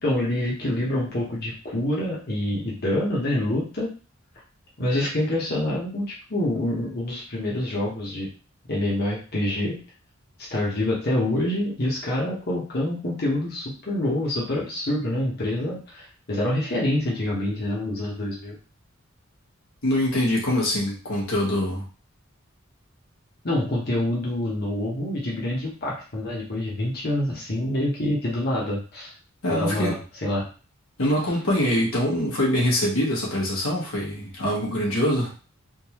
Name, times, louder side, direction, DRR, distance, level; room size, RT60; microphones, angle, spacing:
voice 1, 0.0-3.9 4.8-8.3 8.7-9.8 10.5-18.6 23.4-29.1 29.5-30.5, left 1 dB, 50° left, -4 dB, 1.1 m, -26 dB
voice 2, 19.8-21.8 29.4-30.0 31.0-35.3, left 1 dB, 90° left, -4 dB, 1.4 m, -24 dB
3.6 x 2.6 x 3.0 m, 0.36 s
head